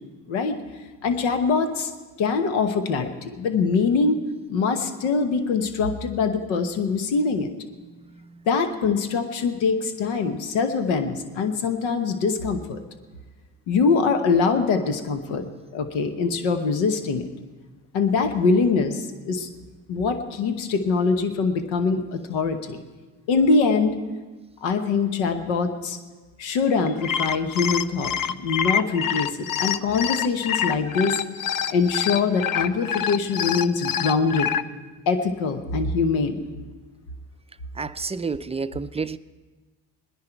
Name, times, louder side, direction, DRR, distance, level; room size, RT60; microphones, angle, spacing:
voice 1, 0.3-0.6 1.0-1.9 2.2-4.2 4.5-7.5 8.5-12.8 13.7-15.5 15.7-17.3 17.9-19.5 19.9-22.8 23.3-24.0 24.6-26.0 26.4-31.2 31.7-34.5 35.1-36.5, left 4 dB, 85° left, 1.1 m, -23 dB
sound 1, 26.9-34.6, left 8 dB, 45° left, 0.7 m, -26 dB
voice 2, 37.8-39.2, right 4 dB, 15° right, 0.4 m, -29 dB
20.0 x 10.5 x 4.5 m
hypercardioid pair, 50°, 45 cm